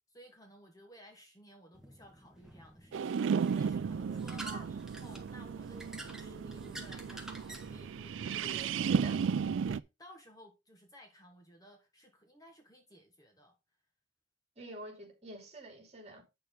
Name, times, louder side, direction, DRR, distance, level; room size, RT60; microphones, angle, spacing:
voice 1, 0.1-9.2 9.6-13.6, equal, 20° left, 1.3 m, -57 dB
sound 1, 1.7-8.7, right 1 dB, 5° right, 1.4 m, -50 dB
sound 2, 2.9-9.8, right 6 dB, 85° right, 0.4 m, -34 dB
voice 2, 8.3-9.2 14.6-16.2, right 2 dB, 35° right, 2.8 m, -47 dB
8.7 x 6.7 x 3.6 m
head